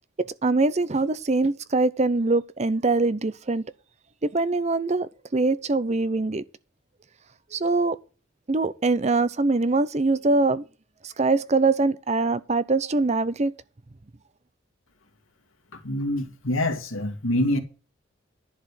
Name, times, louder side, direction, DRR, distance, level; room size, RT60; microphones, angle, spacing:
voice 1, 0.2-3.7 4.2-6.4 7.5-8.0 8.5-10.6 11.0-13.5, right 3 dB, 35° right, 0.6 m, -23 dB
voice 2, 15.7-17.6, left 1 dB, 85° left, 2.0 m, -26 dB
11.0 x 4.9 x 8.4 m
head